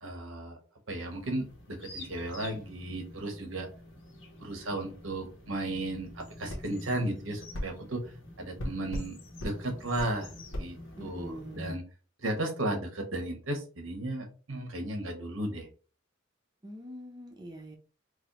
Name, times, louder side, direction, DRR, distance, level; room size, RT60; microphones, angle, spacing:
voice 1, 0.0-0.6 0.9-3.7 4.4-8.0 8.4-9.2 9.4-10.3 10.6-11.8 12.2-15.7, right 1 dB, 80° right, 4 dB, 1.0 m, -35 dB
sound 1, 0.9-11.7, left 1 dB, 65° left, 1.4 m, -48 dB
sound 2, 6.5-6.7 7.5-7.7 8.6-9.1 9.4-9.6 10.0-10.1 10.5-10.7, left 1 dB, 80° left, 1.0 m, -35 dB
voice 2, 11.0-11.7 16.6-17.8, right 1 dB, 20° right, 2 dB, 0.5 m, -43 dB
4.8 x 2.1 x 2.9 m, 0.37 s
head